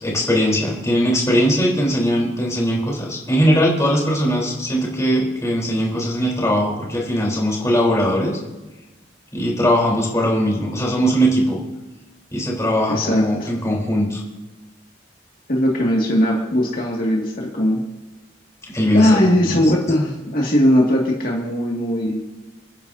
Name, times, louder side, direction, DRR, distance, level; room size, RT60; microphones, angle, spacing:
voice 1, 0.0-8.4 9.3-11.6 12.3-14.2 18.7-19.6, equal, 15° left, -3 dB, 3.8 m, -20 dB
voice 2, 12.9-13.5 15.5-17.8 18.9-22.3, equal, 50° left, -3 dB, 2.1 m, -19 dB
29.0 x 10.5 x 2.7 m, 1.1 s
head